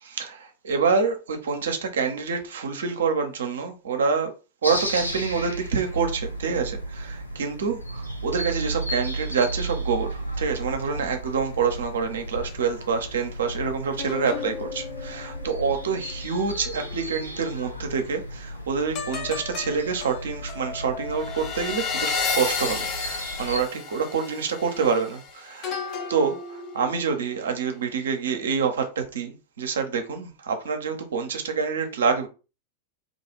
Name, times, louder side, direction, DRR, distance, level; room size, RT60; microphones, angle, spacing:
voice 1, 0.0-4.3 4.6-25.7 26.1-32.3, right 5 dB, 65° right, 0.6 m, -27 dB
sound 1, 4.6-23.6, right 1 dB, 90° left, 0.5 m, -34 dB
sound 2, 14.0-17.6 18.9-27.5 27.9-28.2, left 5 dB, 40° left, 0.6 m, -34 dB
2.5 x 2.3 x 3.0 m
figure-of-eight pair, 90°, 0 cm